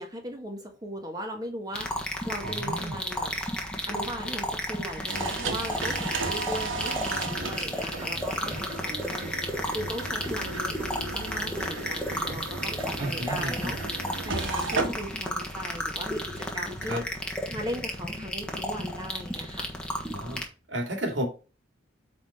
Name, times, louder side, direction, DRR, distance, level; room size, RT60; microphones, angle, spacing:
voice 1, 0.0-3.3 3.8-17.0 17.5-19.7, equal, 20° right, 1.5 m, -38 dB
sound 1, 1.7-20.5, left 1 dB, 5° left, 1.3 m, -33 dB
voice 2, 2.4-2.9 13.0-13.7 16.9-17.0 20.1-20.4 20.7-21.3, right 1 dB, 70° right, 2.5 m, -32 dB
sound 2, 5.1-16.8, right 3 dB, 85° right, 1.7 m, -35 dB
8.6 x 3.8 x 4.2 m
head